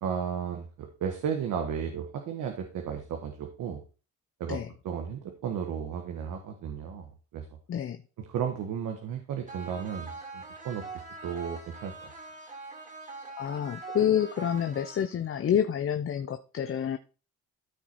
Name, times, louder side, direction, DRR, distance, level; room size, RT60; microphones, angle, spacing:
voice 1, 0.0-3.8 4.4-7.4 8.3-10.8 11.2-12.1, right 7 dB, 80° right, 1.5 m, -34 dB
voice 2, 7.7-8.0 13.3-17.0, left 9 dB, 45° left, 0.8 m, -28 dB
sound 1, 9.5-15.5, right 3 dB, 25° right, 3.0 m, -43 dB
13.5 x 4.7 x 4.3 m
cardioid pair, 90°, 30 cm